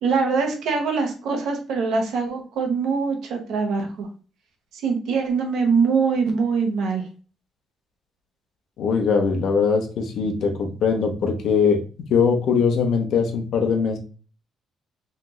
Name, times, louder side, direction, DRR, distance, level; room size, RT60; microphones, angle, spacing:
voice 1, 0.0-4.1 4.7-7.0, right 5 dB, 80° right, 3 dB, 1.0 m, -23 dB
voice 2, 8.8-11.8 12.1-14.0, left 5 dB, 70° left, 4 dB, 0.8 m, -21 dB
3.3 x 3.0 x 2.3 m, 0.38 s
cardioid pair, 90°, 0 cm